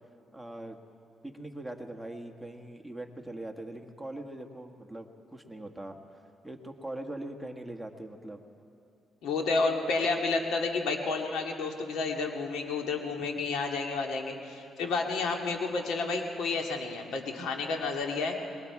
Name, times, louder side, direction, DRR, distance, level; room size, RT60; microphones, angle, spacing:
voice 1, 0.3-0.8 1.2-6.0 6.4-8.4 13.2-13.3, right 1 dB, ahead, 3 dB, 1.5 m, -41 dB
voice 2, 9.2-18.4, left 3 dB, 85° left, 2 dB, 2.0 m, -30 dB
26.0 x 21.5 x 4.8 m, 2.7 s
cardioid pair, 90°, 0 cm